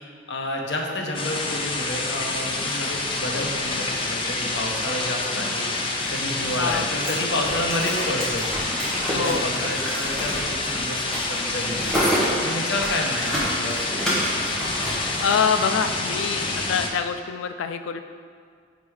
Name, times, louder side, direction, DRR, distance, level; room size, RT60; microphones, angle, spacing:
voice 1, 0.3-5.7 6.1-8.5 9.1-12.0 12.4-13.8, left 1 dB, 65° left, 0 dB, 0.8 m, -30 dB
sound 1, 1.1-16.9, left 2 dB, 25° left, 0.5 m, -28 dB
sound 2, 6.0-15.4, equal, 5° left, 1.3 m, -29 dB
voice 2, 6.5-6.9 9.1-9.4 15.2-18.0, left 6 dB, 85° left, 9 dB, 0.3 m, -25 dB
5.2 x 4.3 x 4.8 m, 2.1 s
head